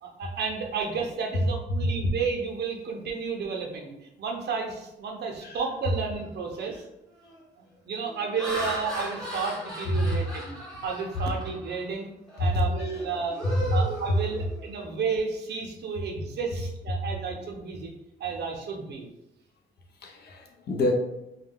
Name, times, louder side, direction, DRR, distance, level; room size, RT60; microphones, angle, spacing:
voice 1, 0.0-6.8 7.6-12.1 12.4-13.4 13.7-17.9 18.2-19.1, right 5 dB, 60° right, 2 dB, 0.6 m, -32 dB
Laughter, 6.3-6.5 7.1-7.4 8.0-11.8 12.3-12.5 12.9-14.8, equal, 5° left, 1.0 m, -37 dB
voice 2, 13.4-13.8 20.0-20.9, left 1 dB, 55° left, 2 dB, 0.7 m, -27 dB
2.3 x 2.2 x 3.5 m, 0.88 s
cardioid pair, 90°, 20 cm